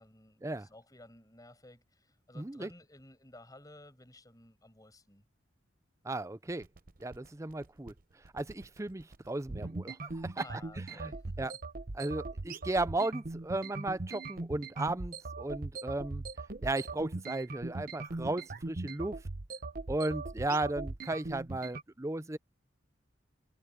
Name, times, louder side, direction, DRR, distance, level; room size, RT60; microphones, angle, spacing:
voice 1, 0.0-5.2 10.4-11.6, left 1 dB, 20° left, 6.3 m, -55 dB
voice 2, 2.4-2.7 6.0-6.7 7.0-7.9 8.3-10.4 11.0-11.1 11.4-11.5 11.9-16.2 16.6-19.2 19.9-22.4, right 2 dB, 15° right, 0.5 m, -35 dB
sound 1, 6.5-21.8, right 3 dB, 45° right, 0.9 m, -40 dB
head